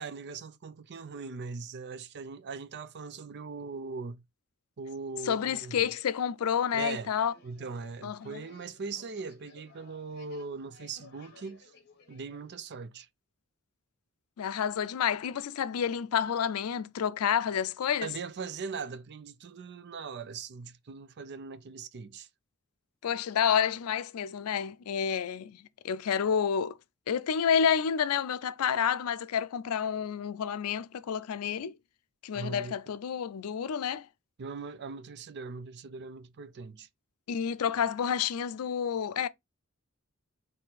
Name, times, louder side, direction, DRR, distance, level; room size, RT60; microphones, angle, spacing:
voice 1, 0.0-4.2 4.8-5.9 6.7-7.1 7.4-11.7 12.1-13.1 18.0-22.3 32.3-32.7 34.4-36.9, right 4 dB, 50° right, 0.5 m, -40 dB
voice 2, 5.3-7.3 8.0-8.4 14.4-18.1 23.0-26.8 27.1-31.8 32.2-34.1 37.3-39.3, left 8 dB, 90° left, 0.4 m, -29 dB
sound 1, 6.6-12.6, left 4 dB, 50° left, 1.3 m, -58 dB
4.3 x 2.7 x 3.9 m
head